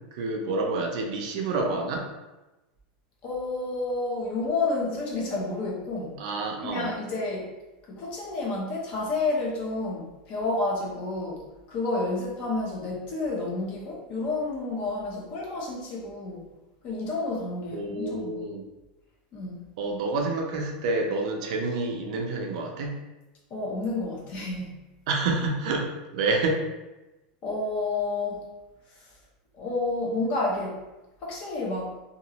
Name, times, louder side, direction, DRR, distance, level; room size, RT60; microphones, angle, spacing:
voice 1, 0.1-2.1 6.2-6.9 17.7-18.6 19.8-23.0 25.1-26.6, right 3 dB, 50° right, 2 dB, 0.4 m, -28 dB
voice 2, 3.2-6.2 6.6-7.5 7.8-16.4 16.8-18.4 19.3-19.7 23.5-24.8 27.4-28.4 28.9-29.2 29.5-30.8 31.2-31.9, left 2 dB, 30° left, -3 dB, 0.6 m, -30 dB
2.9 x 2.4 x 2.8 m, 1.1 s
supercardioid pair, 180°, 5 cm